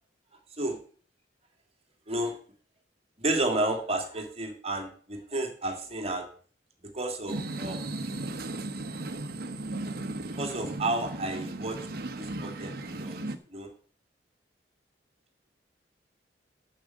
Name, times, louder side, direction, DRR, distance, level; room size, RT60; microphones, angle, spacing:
voice 1, 3.2-6.3 6.9-8.2 10.4-11.8 12.1-13.2 13.5-13.7, right 2 dB, 35° right, 4 dB, 2.2 m, -31 dB
sound 1, 7.3-13.4, right 2 dB, 60° right, 1.1 m, -36 dB
8.9 x 6.6 x 7.6 m, 0.43 s
head